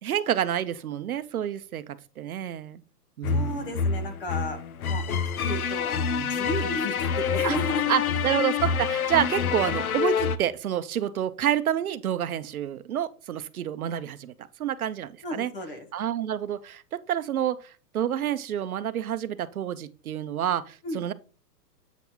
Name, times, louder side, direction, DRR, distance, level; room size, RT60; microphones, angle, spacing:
voice 1, 0.0-2.8 3.2-3.8 6.2-6.3 7.4-7.6 7.9-15.5 15.9-21.1, right 10 dB, 60° right, 0.7 m, -29 dB
sound 1, 3.2-10.4, left 6 dB, 60° left, 0.7 m, -27 dB
voice 2, 3.3-4.6 4.9-7.8 15.2-15.9 20.8-21.0, left 1 dB, 35° left, 1.2 m, -33 dB
8.3 x 5.2 x 2.9 m
hypercardioid pair, 175°, 48 cm